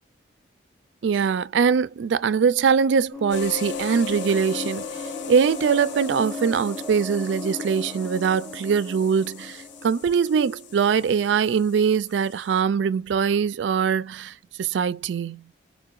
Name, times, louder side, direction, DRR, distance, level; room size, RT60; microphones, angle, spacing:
voice 1, 1.0-15.4, right 6 dB, 75° right, 0.3 m, -22 dB
sound 1, 3.1-11.2, left 3 dB, ahead, 0.6 m, -37 dB
sound 2, 3.3-12.6, left 8 dB, 75° left, 0.5 m, -39 dB
4.6 x 2.2 x 2.3 m
head